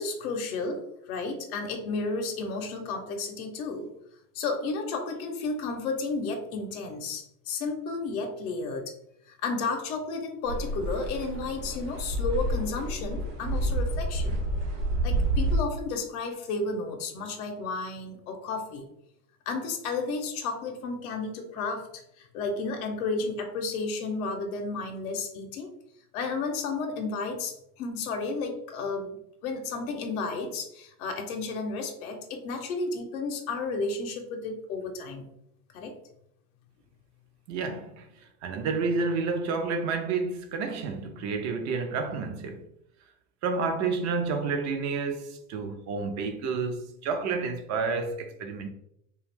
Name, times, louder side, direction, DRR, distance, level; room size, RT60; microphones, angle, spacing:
voice 1, 0.0-3.9 4.3-8.9 9.3-14.4 15.0-18.9 19.5-21.9 22.2-25.7 26.1-35.2 35.7-35.9, left 3 dB, 70° left, 0.7 m, -32 dB
sound 1, 10.5-15.6, right 1 dB, 90° right, 1.0 m, -29 dB
voice 2, 37.5-38.1 38.4-42.7 43.4-48.7, right 4 dB, 40° right, 0.5 m, -30 dB
2.4 x 2.3 x 3.3 m
hypercardioid pair, 85°, 45 cm